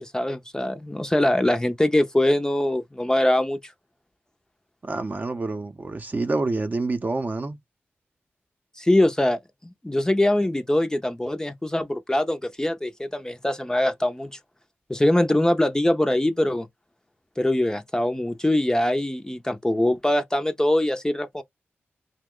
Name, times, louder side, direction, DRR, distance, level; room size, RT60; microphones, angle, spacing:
voice 1, 0.0-3.6 8.8-9.4 9.8-14.3 14.9-16.7 17.4-21.4, left 1 dB, 15° left, 0.5 m, -23 dB
voice 2, 4.8-7.6, right 3 dB, 40° right, 0.6 m, -27 dB
2.7 x 2.1 x 3.6 m
cardioid pair, 55°, 5 cm